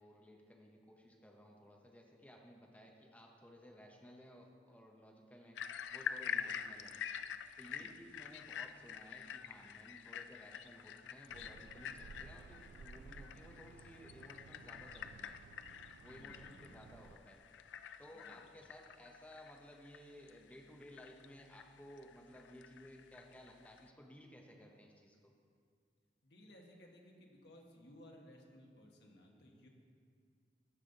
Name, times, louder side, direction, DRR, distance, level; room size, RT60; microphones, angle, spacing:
voice 1, 0.0-7.0 7.6-15.3 16.0-17.7 18.0-25.3, equal, 10° left, 0 dB, 0.8 m, -57 dB
sound 1, 5.5-23.9, left 8 dB, 90° left, 0.4 m, -47 dB
voice 2, 7.6-7.9 16.0-16.9 18.1-18.4 26.2-29.7, left 1 dB, 70° left, 0 dB, 1.5 m, -60 dB
sound 2, 11.3-17.2, right 5 dB, 90° right, 0.3 m, -57 dB
15.0 x 5.6 x 4.0 m, 2.1 s
head